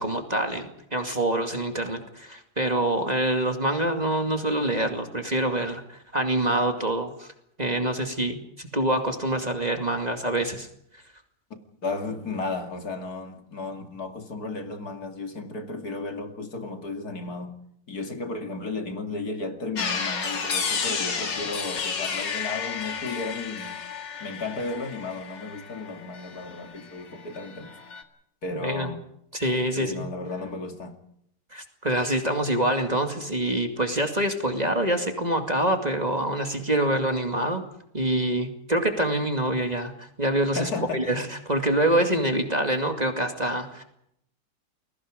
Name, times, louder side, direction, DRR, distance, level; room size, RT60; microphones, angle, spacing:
voice 1, 0.0-7.3 7.6-10.7 28.6-28.9 29.3-30.1 31.5-37.6 37.9-43.8, right 1 dB, 20° right, 2.4 m, -26 dB
voice 2, 11.8-17.6 17.9-23.8 24.2-27.8 28.4-29.0 29.8-31.0 40.5-41.2, left 3 dB, 60° left, 2.9 m, -34 dB
sound 1, 19.8-26.9 27.2-28.0, left 5 dB, 85° left, 2.7 m, -32 dB
29.0 x 22.0 x 5.1 m
omnidirectional pair, 1.9 m